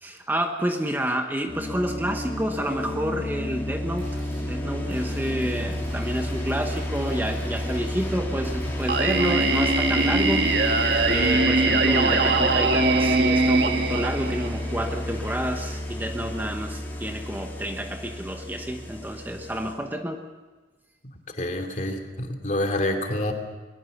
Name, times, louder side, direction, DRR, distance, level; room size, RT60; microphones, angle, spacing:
voice 1, 0.0-10.8 11.1-20.2, equal, 10° right, 5 dB, 1.1 m, -29 dB
sound 1, 1.5-19.7, left 1 dB, 10° left, 3.6 m, -31 dB
sound 2, 4.0-4.5 4.9-11.4, equal, 40° right, 7.1 m, -43 dB
Singing, 8.9-14.8, right 3 dB, 65° right, 1.7 m, -22 dB
voice 2, 21.0-23.3, left 1 dB, 45° left, 4 dB, 2.8 m, -28 dB
21.5 x 20.5 x 6.8 m, 1.3 s
head